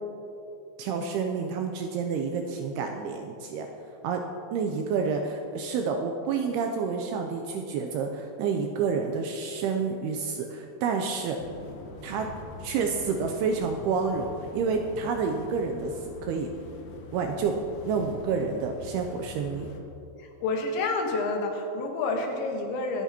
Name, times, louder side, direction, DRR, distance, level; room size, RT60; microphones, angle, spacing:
voice 1, 0.8-3.7 4.0-4.2 4.5-11.4 12.0-12.3 12.6-16.5 17.1-17.6 17.9-19.7, right 5 dB, 85° right, 3 dB, 2.3 m, -29 dB
sound 1, 11.4-19.8, left 3 dB, 70° left, 2.5 m, -44 dB
voice 2, 20.2-23.0, left 3 dB, 85° left, 2 dB, 3.6 m, -29 dB
24.0 x 8.1 x 2.9 m, 2.9 s
omnidirectional pair, 5.1 m